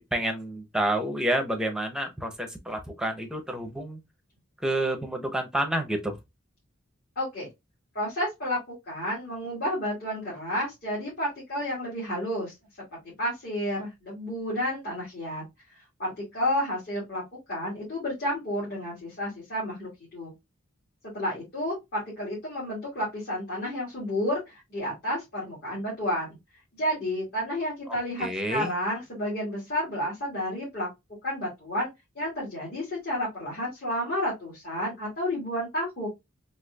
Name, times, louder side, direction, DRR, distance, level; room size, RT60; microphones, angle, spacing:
voice 1, 0.0-4.0 4.6-6.2 27.9-28.7, right 1 dB, 5° right, 0.6 m, -29 dB
voice 2, 7.2-7.5 7.9-8.6 8.9-12.5 13.2-15.4 16.0-17.2 17.5-20.3 21.0-26.4 26.8-30.9 31.2-31.9 32.2-36.1, equal, 50° left, 1.8 m, -31 dB
4.1 x 2.7 x 2.2 m
head